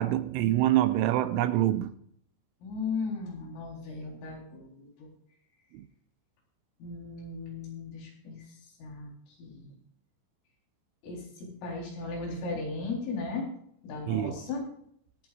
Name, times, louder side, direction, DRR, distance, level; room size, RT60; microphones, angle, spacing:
voice 1, 0.0-1.9 5.7-5.9 14.1-14.4, right 13 dB, 80° right, 3.0 m, -26 dB
voice 2, 2.6-5.1 6.8-8.4 8.8-9.1 9.4-9.7 11.0-13.5 13.8-14.6, left 4 dB, 85° left, 6.6 m, -36 dB
23.0 x 9.5 x 2.5 m
omnidirectional pair, 5.8 m